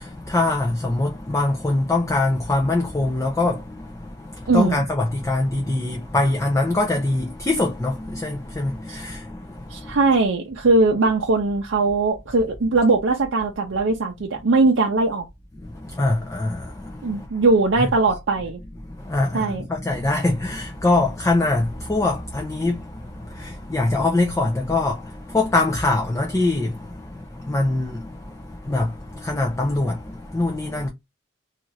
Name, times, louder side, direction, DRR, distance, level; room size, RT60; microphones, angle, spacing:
voice 1, 0.0-10.0 15.6-17.4 17.8-17.9 18.8-30.9, left 2 dB, 15° left, 0.4 m, -24 dB
voice 2, 4.5-4.8 8.9-9.0 9.7-15.3 17.0-18.6 19.3-19.6, right 3 dB, 80° right, 0.5 m, -20 dB
2.7 x 2.4 x 3.0 m
head